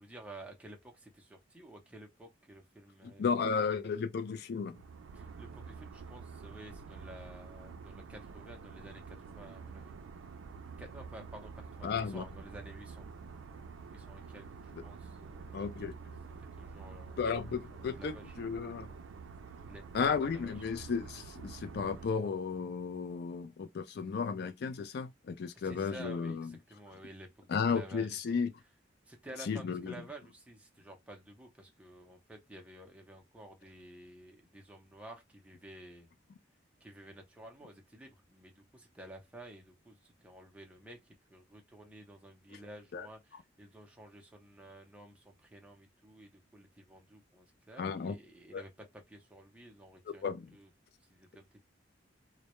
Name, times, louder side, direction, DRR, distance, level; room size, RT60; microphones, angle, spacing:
voice 1, 0.0-3.5 5.1-9.9 10.8-13.1 13.9-15.8 16.4-17.3 17.7-18.4 19.7-19.8 20.3-20.7 25.5-28.4 29.1-36.1 36.8-41.0 41.3-50.2 50.5-50.7 51.1-51.6, right 1 dB, 5° right, 0.5 m, -52 dB
voice 2, 3.0-4.8 11.8-12.3 15.5-15.9 17.2-18.9 19.9-26.5 27.5-28.5 29.5-29.9 42.9-43.1 47.8-48.1 48.5-48.6 50.2-50.5, left 5 dB, 55° left, 0.3 m, -34 dB
sound 1, 4.7-22.1, right 5 dB, 85° right, 0.3 m, -48 dB
2.2 x 2.0 x 2.9 m
head